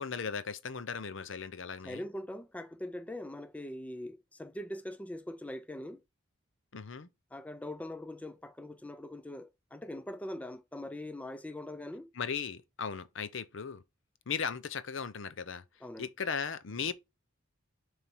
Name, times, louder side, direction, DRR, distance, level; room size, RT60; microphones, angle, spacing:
voice 1, 0.0-2.0 6.7-7.1 12.1-13.8 14.3-15.6 16.0-16.9, left 6 dB, 65° left, 0.7 m, -37 dB
voice 2, 1.8-6.0 7.3-12.1 15.8-16.1, left 1 dB, 5° left, 0.4 m, -42 dB
7.0 x 3.4 x 4.5 m
head